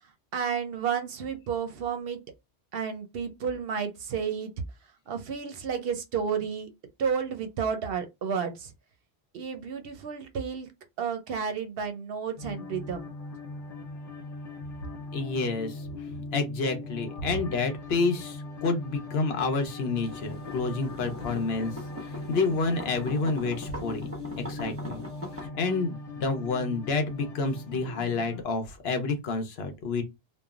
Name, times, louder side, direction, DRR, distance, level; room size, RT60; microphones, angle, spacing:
voice 1, 0.3-2.2 2.7-4.5 5.1-6.7 7.0-8.7 9.3-10.7 11.0-13.1, right 6 dB, 65° right, 0.7 m, -31 dB
sound 1, 12.4-28.4, left 2 dB, 45° left, 0.5 m, -40 dB
voice 2, 15.1-15.8 16.3-21.7 22.0-24.0 24.5-25.0 25.4-30.0, left 3 dB, 70° left, 0.9 m, -29 dB
sound 2, 19.9-25.5, equal, 15° right, 0.9 m, -42 dB
3.1 x 2.2 x 2.3 m
omnidirectional pair, 1.1 m